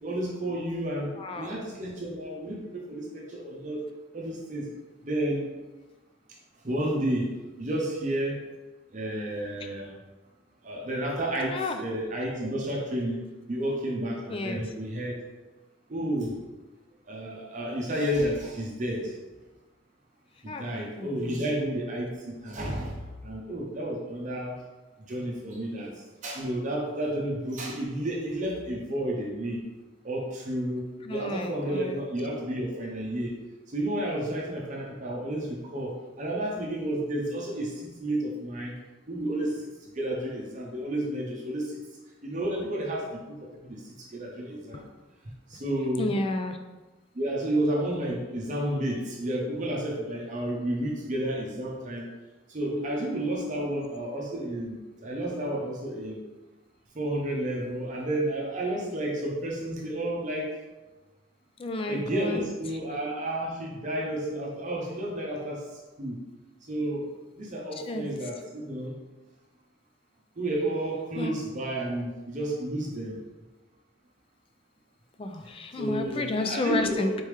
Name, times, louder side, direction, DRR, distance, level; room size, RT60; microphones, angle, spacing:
voice 1, 0.0-1.1 1.4-3.8 4.1-4.7 5.0-5.5 6.6-7.3 7.6-8.4 8.9-9.9 10.6-15.2 15.9-16.3 17.1-19.1 20.4-24.6 25.1-25.9 26.2-29.6 30.0-33.3 33.7-38.7 39.1-39.5 39.9-41.8 42.2-43.8 44.1-44.9 45.5-46.1 47.1-52.1 52.5-56.2 56.9-60.5 61.9-65.6 66.0-66.2 66.7-67.1 67.4-68.9 70.4-73.2 75.8-77.1, right 1 dB, 40° right, -2 dB, 0.7 m, -31 dB
voice 2, 1.2-1.6 11.5-11.8 12.4-12.5 14.3-14.6 20.5-21.5 31.0-32.0 44.7-44.9 46.0-46.6 61.6-62.5 67.9-68.0 71.2-71.3 75.2-77.2, left 2 dB, 30° left, 6 dB, 0.4 m, -31 dB
4.3 x 3.4 x 3.2 m, 1.2 s
head